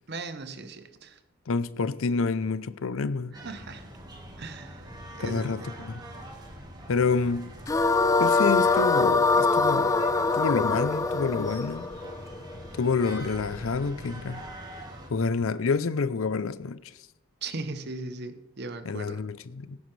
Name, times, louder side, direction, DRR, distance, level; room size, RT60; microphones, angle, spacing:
voice 1, 0.1-1.2 3.3-3.8 4.4-5.5 17.4-19.2, right 3 dB, 50° right, 0.9 m, -38 dB
voice 2, 1.5-3.4 5.2-6.0 6.9-7.5 8.2-10.1 10.3-11.9 12.7-14.4 15.1-16.8 18.8-19.8, left 4 dB, 70° left, 0.5 m, -28 dB
sound 1, 3.3-15.1, right 1 dB, 20° right, 1.6 m, -43 dB
sound 2, 7.7-12.9, left 3 dB, 15° left, 0.3 m, -23 dB
16.5 x 9.2 x 3.3 m
head